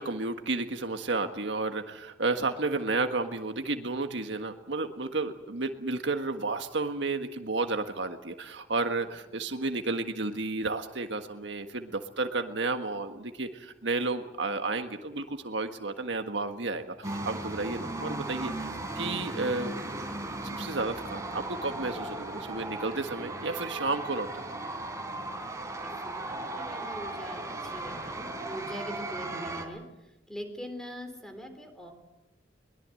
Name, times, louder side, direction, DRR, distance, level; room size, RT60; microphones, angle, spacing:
voice 1, 0.0-19.8 20.4-24.6, right 3 dB, 70° right, 6 dB, 1.6 m, -32 dB
sound 1, 17.0-29.7, right 2 dB, 15° right, 3.8 m, -37 dB
voice 2, 25.7-29.8 30.3-31.9, equal, 5° left, 6 dB, 3.8 m, -42 dB
23.0 x 21.0 x 7.8 m, 0.96 s
head